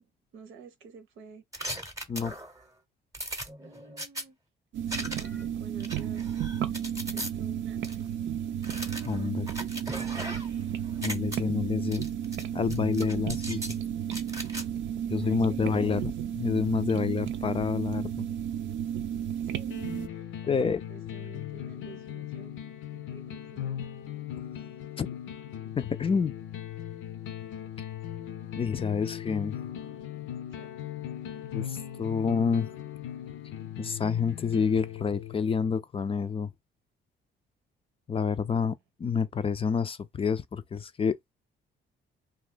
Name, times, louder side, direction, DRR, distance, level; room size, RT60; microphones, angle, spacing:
voice 1, 0.0-1.5 3.6-4.4 4.9-6.3 7.1-8.1 15.0-16.2 19.4-19.8 20.1-22.6 22.9-23.9 30.5-30.7 38.5-38.6, right 5 dB, 90° right, 0.9 m, -51 dB
sound 1, 1.5-2.6 3.1-4.2 4.9-5.4 5.8-7.3 7.8-8.0 8.6-10.6 10.9-11.4 11.9-12.4 12.7-13.8 14.1-14.6, right 1 dB, 15° right, 0.8 m, -38 dB
sound 2, 4.7-20.1, right 9 dB, 70° right, 0.5 m, -33 dB
voice 2, 9.0-9.5 11.0-12.1 12.5-13.6 15.1-16.0 16.4-18.3 20.5-20.8 25.0-25.1 25.8-26.3 28.5-29.6 31.5-32.7 33.8-36.5 38.1-41.2, left 6 dB, 30° left, 0.3 m, -28 dB
sound 3, 19.7-35.6, left 10 dB, 85° left, 0.6 m, -39 dB
2.7 x 2.3 x 3.8 m
cardioid pair, 90°, 20 cm